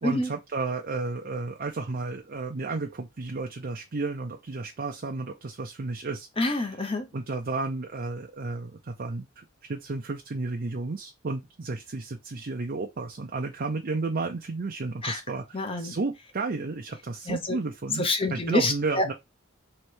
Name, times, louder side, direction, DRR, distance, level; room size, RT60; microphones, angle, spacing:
voice 1, 0.0-6.3 7.1-19.1, right 3 dB, 45° right, 0.6 m, -32 dB
voice 2, 6.4-7.1 15.0-15.2 15.5-16.0 17.3-17.6 18.0-19.1, left 1 dB, 25° left, 0.9 m, -27 dB
3.2 x 3.2 x 4.5 m
head